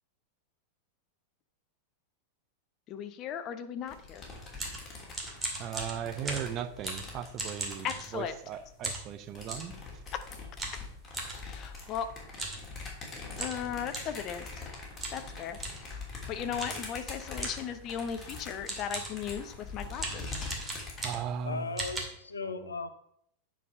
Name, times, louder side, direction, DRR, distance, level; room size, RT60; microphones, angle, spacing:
voice 1, 2.9-4.3 7.8-8.3 10.1-10.2 11.4-12.1 13.4-14.6 15.1-20.5, left 8 dB, 35° left, 10 dB, 0.9 m, -37 dB
sound 1, 3.9-8.7 9.2-21.1, left 3 dB, 20° left, 3.0 m, -44 dB
sound 2, 4.3-8.5 8.8-9.7 10.6-11.4 12.3-12.6 12.9-13.0 13.4-14.2 15.0-15.3 15.6-15.9 16.6-16.9 17.4-17.7 18.3-18.4 18.7-19.2 20.0-21.4 21.8-22.0, right 2 dB, 15° right, 2.2 m, -38 dB
voice 2, 5.6-7.9 8.1-9.7 21.0-21.8 22.6-22.7, right 8 dB, 35° right, 10 dB, 0.7 m, -37 dB
voice 3, 21.4-22.9, left 4 dB, 75° left, 9 dB, 0.8 m, -37 dB
9.4 x 5.0 x 5.3 m, 0.69 s
figure-of-eight pair, 90°, 0 cm